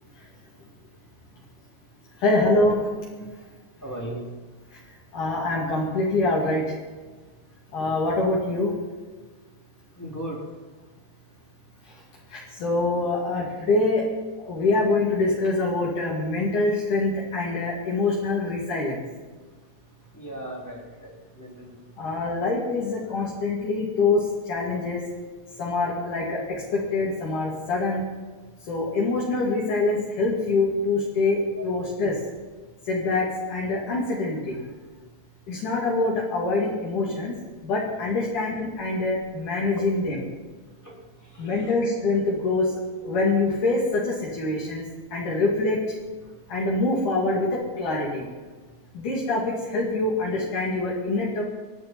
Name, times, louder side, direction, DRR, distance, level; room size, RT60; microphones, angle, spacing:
voice 1, 2.2-2.8 5.1-6.7 7.7-8.7 11.9-12.0 12.3-14.0 14.4-19.0 22.0-25.0 25.6-26.4 26.7-28.0 28.7-32.2 32.9-34.6 35.5-37.3 37.6-40.3 41.4-42.7 43.0-44.8 45.1-45.8 46.5-48.3 48.9-51.4, left 2 dB, 65° left, -5 dB, 4.1 m, -25 dB
voice 2, 3.8-4.2 7.8-7.9 10.0-10.4 20.1-21.1 21.3-21.7 31.5-31.6 40.8-40.9 41.3-41.5, right 1 dB, 5° left, -3 dB, 3.1 m, -36 dB
26.0 x 10.5 x 4.6 m, 1.4 s
omnidirectional pair, 3.9 m